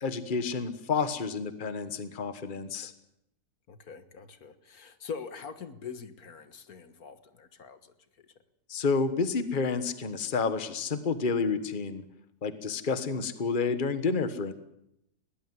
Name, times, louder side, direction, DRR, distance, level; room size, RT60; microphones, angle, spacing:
voice 1, 0.0-2.9 8.7-12.0 12.4-14.5, left 4 dB, 35° left, 11 dB, 1.5 m, -30 dB
voice 2, 3.7-8.3, left 6 dB, 70° left, 11 dB, 1.9 m, -43 dB
21.0 x 19.0 x 9.7 m, 0.80 s
omnidirectional pair, 1.6 m